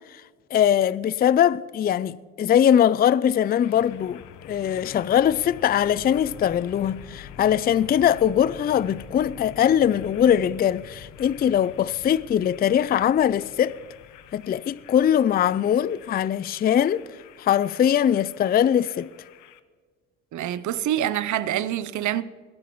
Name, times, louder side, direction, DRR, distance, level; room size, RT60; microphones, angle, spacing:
voice 1, 0.5-13.8 14.3-17.0 17.4-19.1, left 9 dB, 30° left, 0.4 m, -21 dB
sound 1, 3.6-19.6, left 8 dB, 90° left, 0.9 m, -45 dB
voice 2, 20.3-22.2, right 11 dB, 70° right, 0.7 m, -26 dB
21.0 x 12.5 x 3.1 m
cardioid pair, 90°, 30 cm